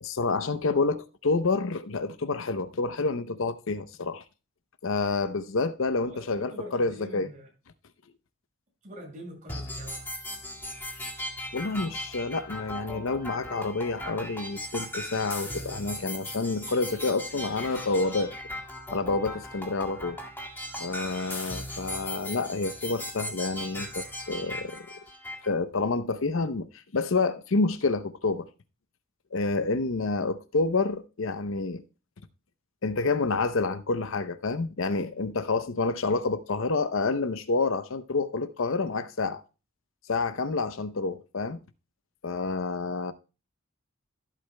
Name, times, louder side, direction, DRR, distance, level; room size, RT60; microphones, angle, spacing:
voice 1, 0.0-4.2 4.8-7.3 11.5-18.3 18.9-20.2 20.8-24.9 25.4-26.7 26.9-28.5 29.3-31.8 32.8-39.4 40.1-41.6 42.2-43.1, left 3 dB, 70° left, 0.7 m, -28 dB
voice 2, 6.0-7.5 8.8-10.0, equal, 40° right, 6.1 m, -44 dB
sound 1, 9.5-25.5, left 1 dB, 10° left, 2.0 m, -38 dB
15.0 x 8.4 x 2.2 m
head